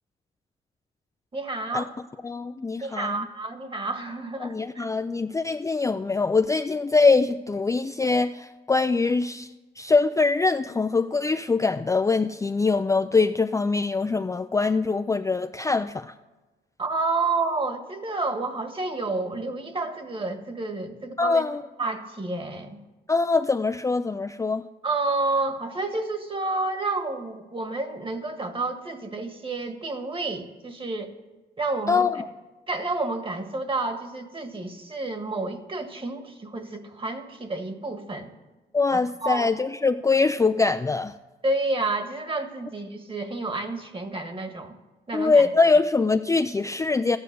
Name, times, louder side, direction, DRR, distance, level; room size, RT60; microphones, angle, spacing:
voice 1, 1.3-1.9 2.8-4.9 16.8-21.4 21.8-22.8 24.8-31.1 31.6-32.1 32.7-38.3 38.9-39.5 41.4-44.8 45.1-45.4, right 3 dB, 25° right, 7 dB, 1.6 m, -30 dB
voice 2, 2.2-3.3 4.4-9.5 9.8-16.1 21.2-21.6 23.1-24.6 31.9-32.2 38.7-41.1 45.1-47.2, left 4 dB, 15° left, 7 dB, 0.4 m, -23 dB
14.0 x 10.0 x 6.7 m, 1.2 s
cardioid pair, 90°, 20 cm